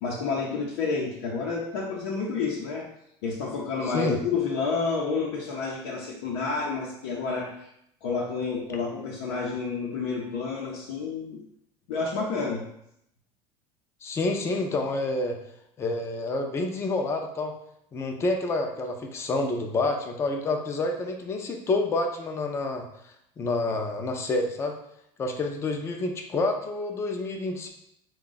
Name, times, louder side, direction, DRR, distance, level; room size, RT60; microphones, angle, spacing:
voice 1, 0.0-2.9 3.2-7.7 8.0-11.4 11.9-12.6, left 4 dB, 90° left, -4 dB, 0.7 m, -30 dB
voice 2, 14.0-15.4 15.8-17.5 17.9-22.9 23.4-24.8 25.2-27.7, left 2 dB, 20° left, 3 dB, 0.5 m, -28 dB
3.6 x 2.3 x 3.9 m, 0.75 s
supercardioid pair, 140°, 12 cm